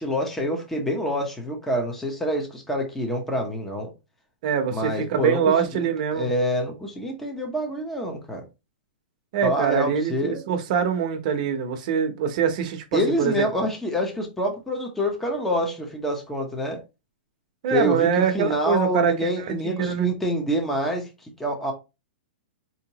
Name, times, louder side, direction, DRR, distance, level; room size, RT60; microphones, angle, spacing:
voice 1, 0.0-3.9 4.7-5.9 6.1-8.4 9.4-10.4 12.9-16.8 17.7-21.7, equal, 5° left, 0.8 m, -26 dB
voice 2, 4.4-6.3 9.3-13.5 17.6-20.1, right 7 dB, 45° right, 0.8 m, -24 dB
4.4 x 2.9 x 2.8 m
hypercardioid pair, 155°, 6 cm